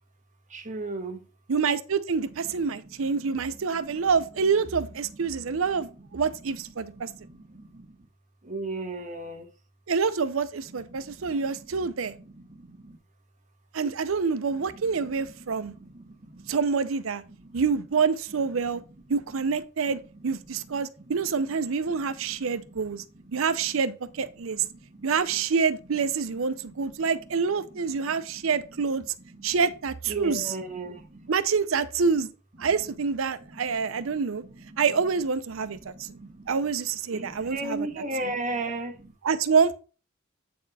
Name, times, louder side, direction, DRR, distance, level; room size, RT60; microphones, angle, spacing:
voice 1, 0.5-1.2 3.0-3.1 3.9-4.0 5.4-5.5 6.1-6.2 7.0-7.9 8.4-9.5 10.9-11.4 12.2-13.0 15.1-15.2 15.5-16.6 17.4-17.6 18.7-18.8 22.3-22.7 23.2-23.5 24.7-25.1 28.0-28.4 29.4-29.5 30.1-31.3 33.5-34.8 35.8-36.5 37.1-39.1, right 2 dB, 35° right, 1.3 m, -37 dB
voice 2, 1.5-7.1 9.9-12.1 13.7-15.7 16.5-17.2 17.5-18.8 19.1-23.0 23.3-24.7 25.0-29.0 29.4-30.6 31.3-32.3 32.6-34.4 34.8-36.1 36.5-37.9 39.2-39.8, right 5 dB, 85° right, 0.6 m, -27 dB
8.4 x 4.3 x 4.1 m
head